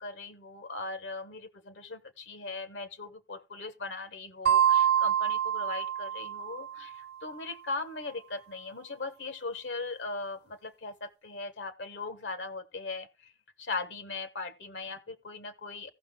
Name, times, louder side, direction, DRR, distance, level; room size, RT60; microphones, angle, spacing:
voice 1, 0.0-13.3 13.6-15.9, left 3 dB, 75° left, 0.9 m, -39 dB
sound 1, 4.5-7.0, right 10 dB, 60° right, 1.0 m, -26 dB
15.5 x 5.9 x 3.6 m
head